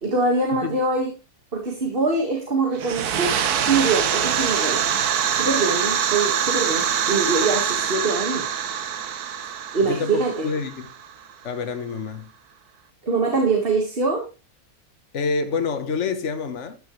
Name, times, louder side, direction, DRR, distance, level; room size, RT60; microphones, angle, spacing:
voice 1, 0.0-1.1 1.5-3.4 3.7-4.8 5.3-8.5 9.7-10.5 13.0-14.3, right 3 dB, 35° right, 2.0 m, -23 dB
sound 1, 2.7-11.3, right 8 dB, 80° right, 1.5 m, -24 dB
voice 2, 9.8-10.9 11.4-12.3 15.1-16.8, left 4 dB, 50° left, 1.5 m, -27 dB
13.5 x 10.0 x 3.2 m
omnidirectional pair, 1.6 m